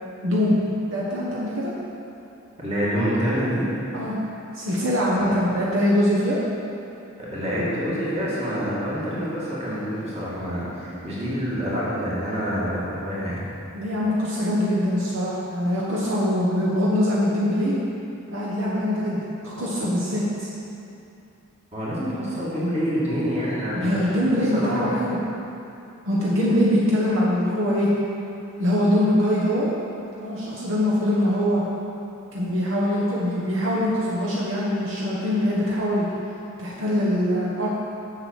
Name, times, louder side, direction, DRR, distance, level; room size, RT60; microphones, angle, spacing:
voice 1, 0.2-0.6 0.9-1.7 3.9-4.2 4.5-6.4 13.7-17.8 18.3-20.5 23.7-25.2 26.0-27.9 28.6-29.7 30.2-31.6 32.3-36.1 36.6-37.7, left 1 dB, 65° right, -6 dB, 1.2 m, -23 dB
voice 2, 2.6-3.6 5.2-5.3 7.2-13.4 21.7-24.1 24.5-24.9, equal, 30° right, -8 dB, 2.3 m, -27 dB
7.8 x 6.0 x 7.3 m, 2.8 s
head